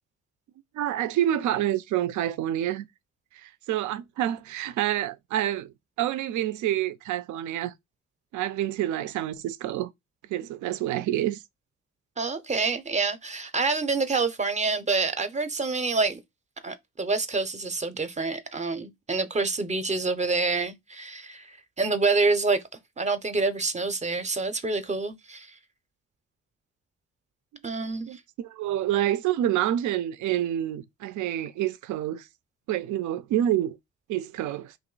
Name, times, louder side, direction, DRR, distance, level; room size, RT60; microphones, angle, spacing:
voice 1, 0.7-2.9 3.3-7.7 8.3-9.9 10.3-11.4 28.1-32.3 32.7-33.8 34.1-34.7, right 12 dB, 75° right, 0.5 m, -28 dB
voice 2, 12.2-16.2 16.6-22.6 23.0-25.5 27.6-28.1, right 3 dB, 25° right, 0.6 m, -27 dB
3.0 x 2.6 x 3.8 m
cardioid pair, 90°, 30 cm